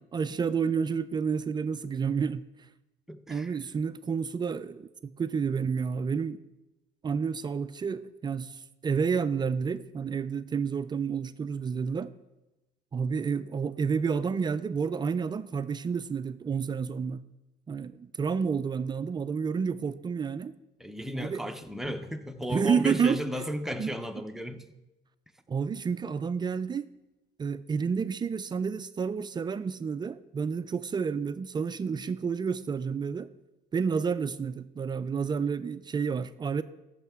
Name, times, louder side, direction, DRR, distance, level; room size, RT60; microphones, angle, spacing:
voice 1, 0.1-2.4 3.3-6.4 7.0-8.5 8.8-12.1 12.9-17.2 17.7-20.5 21.1-21.4 22.5-23.2 23.8-23.9 25.5-26.9 27.4-33.3 33.7-36.6, right 6 dB, 25° right, 0.4 m, -30 dB
voice 2, 3.1-3.5 20.8-24.7, equal, ahead, 0.7 m, -34 dB
14.5 x 6.4 x 3.6 m
cardioid pair, 110°, 17 cm